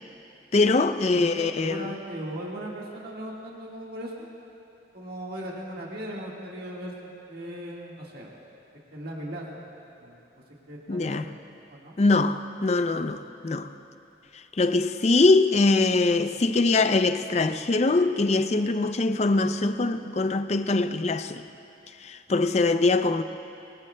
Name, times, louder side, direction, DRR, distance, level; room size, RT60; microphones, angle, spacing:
voice 1, 0.5-1.9 10.9-11.3 12.0-13.7 14.6-21.5 22.0-23.2, left 3 dB, 35° left, 0.4 m, -23 dB
voice 2, 1.1-4.3 4.9-6.9 7.3-8.3 8.9-9.4 10.0-10.2 10.7-11.3 11.7-12.0, right 1 dB, 55° right, 1.7 m, -37 dB
22.5 x 20.0 x 2.2 m
head